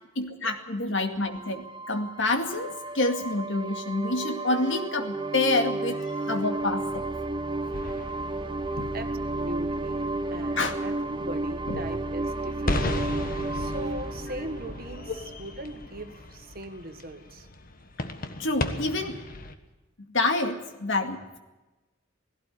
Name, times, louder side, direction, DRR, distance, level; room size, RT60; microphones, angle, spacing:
voice 1, 0.2-7.1 8.8-8.9 10.6-10.8 11.7-11.8 18.4-19.2 20.1-21.4, left 2 dB, 65° left, 6 dB, 2.2 m, -28 dB
sound 1, 1.2-15.6, right 2 dB, 25° right, 0.7 m, -32 dB
sound 2, 7.6-19.5, left 2 dB, 45° left, 1.5 m, -36 dB
voice 2, 8.9-12.9 13.5-17.5, right 1 dB, 45° right, 7 dB, 1.7 m, -39 dB
18.0 x 16.5 x 9.3 m, 1.1 s
head